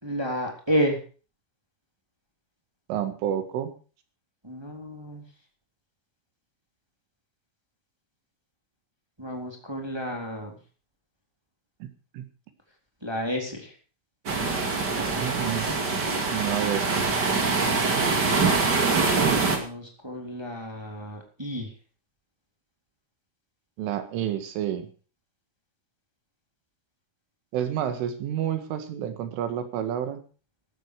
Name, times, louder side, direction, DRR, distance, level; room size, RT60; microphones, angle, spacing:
voice 1, 0.0-1.0 4.4-5.3 9.2-10.6 13.0-13.7 19.5-21.7, equal, 5° right, 2 dB, 2.5 m, -31 dB
voice 2, 2.9-3.8 11.8-11.9 12.1-12.3 15.2-15.7 16.3-17.1 23.8-24.9 27.5-30.2, right 10 dB, 75° right, 9 dB, 4.2 m, -29 dB
sound 1, 14.2-19.6, right 4 dB, 40° right, 1.6 m, -24 dB
14.5 x 13.0 x 4.9 m, 0.37 s
omnidirectional pair, 5.9 m